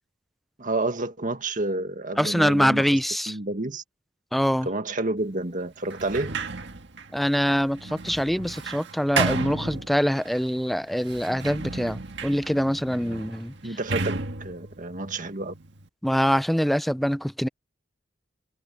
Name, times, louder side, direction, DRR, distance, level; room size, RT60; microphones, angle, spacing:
voice 1, 0.6-2.9 3.3-3.8 4.6-6.4 13.6-15.5, right 2 dB, 45° right, 1.9 m, -29 dB
voice 2, 2.2-3.3 4.3-4.7 7.1-13.5 16.0-17.5, equal, ahead, 0.6 m, -24 dB
Sliding door, 5.9-10.4 11.0-15.9, right 4 dB, 65° right, 1.8 m, -33 dB
head